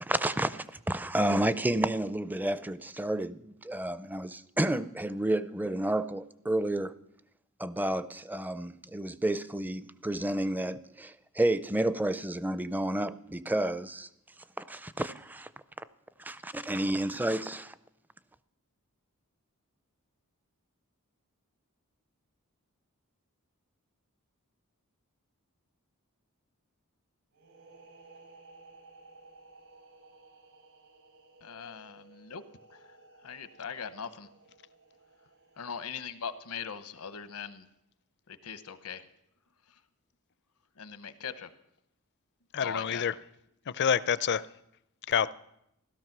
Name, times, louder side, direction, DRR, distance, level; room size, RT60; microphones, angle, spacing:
voice 1, 0.0-6.9 7.6-14.1 14.6-15.5 16.2-17.7, right 1 dB, 10° right, 0.4 m, -30 dB
sound 1, 27.3-36.8, right 3 dB, 80° right, 4.7 m, -57 dB
voice 2, 31.4-32.4 32.7-32.8 33.2-34.3 35.6-37.7 38.3-39.0 40.8-41.5 42.6-43.0, left 6 dB, 85° left, 1.0 m, -40 dB
voice 3, 42.5-43.2 43.7-44.5 45.1-45.3, left 8 dB, 50° left, 0.5 m, -27 dB
16.5 x 13.0 x 6.0 m
head